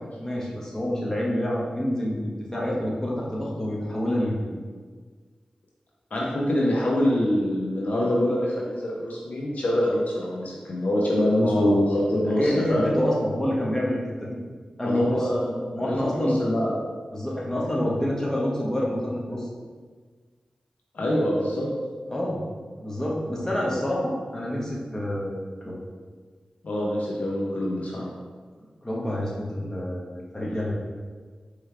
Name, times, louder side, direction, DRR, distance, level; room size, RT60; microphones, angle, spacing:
voice 1, 0.2-4.6 11.4-11.8 12.3-14.4 14.8-15.3 15.7-16.4 17.1-19.5 22.1-22.4 22.8-25.7 28.8-30.7, left 1 dB, 20° left, -4 dB, 1.3 m, -27 dB
voice 2, 6.1-12.9 14.8-16.7 20.9-21.7 26.6-28.1, left 1 dB, 70° left, -4 dB, 0.8 m, -25 dB
4.6 x 3.2 x 3.3 m, 1.5 s
cardioid pair, 40°, 3 cm